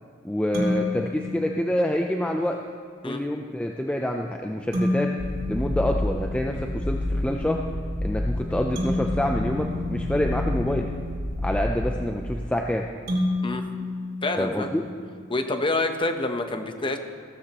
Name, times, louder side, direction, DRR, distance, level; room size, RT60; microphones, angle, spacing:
voice 1, 0.2-2.6 3.0-5.1 5.5-7.6 8.0-10.9 11.4-12.9 14.4-14.8, left 1 dB, 5° left, 2 dB, 0.5 m, -27 dB
sound 1, 0.5-2.2 4.7-6.7 8.8-10.9 13.1-15.1, left 1 dB, 50° right, 3.1 m, -30 dB
sound 2, 5.2-12.3, left 1 dB, 45° left, 1.0 m, -29 dB
voice 2, 14.2-14.7 15.3-17.0, left 2 dB, 25° left, 6 dB, 0.9 m, -27 dB
16.0 x 13.0 x 3.0 m, 2.2 s
head